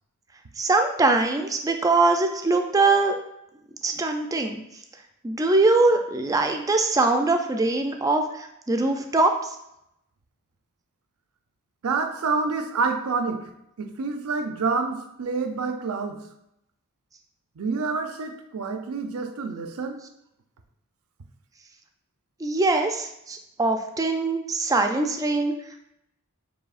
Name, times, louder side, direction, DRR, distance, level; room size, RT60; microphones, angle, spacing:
voice 1, 0.6-3.2 3.8-4.6 5.2-9.6 22.4-25.5, right 3 dB, 15° right, 5 dB, 0.3 m, -22 dB
voice 2, 11.8-13.5 13.8-16.2 17.6-20.0, right 4 dB, 75° right, 6 dB, 0.5 m, -28 dB
6.9 x 2.7 x 2.4 m, 0.81 s
head